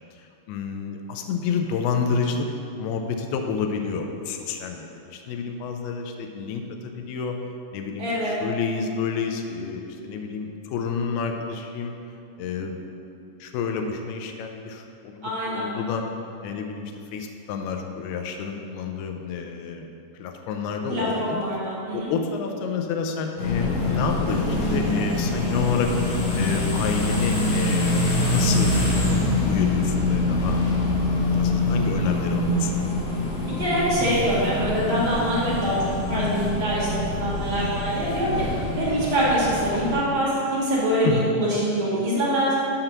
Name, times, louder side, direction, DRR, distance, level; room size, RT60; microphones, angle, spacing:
voice 1, 0.0-2.5 2.8-7.4 7.7-11.9 12.4-12.8 13.4-16.0 16.4-19.9 20.1-21.4 21.9-30.9 31.3-32.7 41.0-41.3, left 5 dB, 90° left, 4 dB, 2.5 m, -29 dB
voice 2, 8.0-8.3 15.2-15.7 20.9-22.1 33.6-35.8 36.1-38.3 38.8-42.5, equal, 45° right, -9 dB, 2.0 m, -24 dB
sound 1, 23.4-39.9, left 2 dB, 65° left, 2.3 m, -25 dB
6.6 x 5.7 x 5.9 m, 2.7 s
omnidirectional pair, 4.4 m